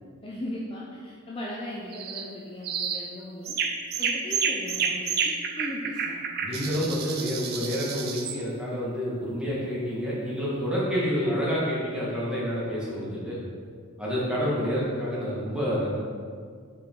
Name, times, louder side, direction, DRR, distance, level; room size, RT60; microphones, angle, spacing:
voice 1, 0.2-3.6 4.0-6.2, left 1 dB, 25° left, -5 dB, 0.5 m, -37 dB
sound 1, 1.9-2.3 2.6-3.1 3.5-8.4, right 6 dB, 45° right, 0.5 m, -30 dB
voice 2, 6.4-13.4 14.0-15.9, equal, 5° right, -8 dB, 1.4 m, -28 dB
5.8 x 4.8 x 3.6 m, 2.1 s
head